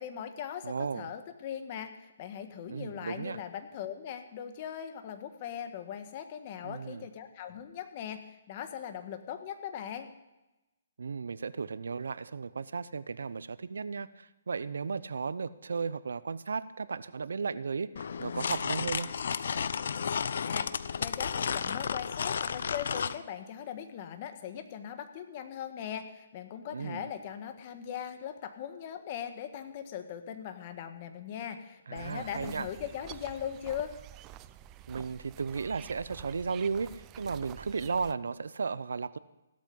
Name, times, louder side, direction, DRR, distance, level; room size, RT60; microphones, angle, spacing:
voice 1, 0.0-10.1 20.5-33.9, left 9 dB, 35° left, 8 dB, 1.6 m, -40 dB
voice 2, 0.6-1.1 2.7-3.4 6.6-7.1 11.0-19.1 26.7-27.1 31.9-32.7 34.9-39.2, right 5 dB, 85° right, 16 dB, 0.7 m, -35 dB
sound 1, 18.0-23.2, left 6 dB, 65° left, 0.7 m, -32 dB
sound 2, 31.9-38.1, right 13 dB, 20° right, 0.5 m, -49 dB
16.0 x 12.5 x 5.4 m, 1.0 s
hypercardioid pair, 160°, 0 cm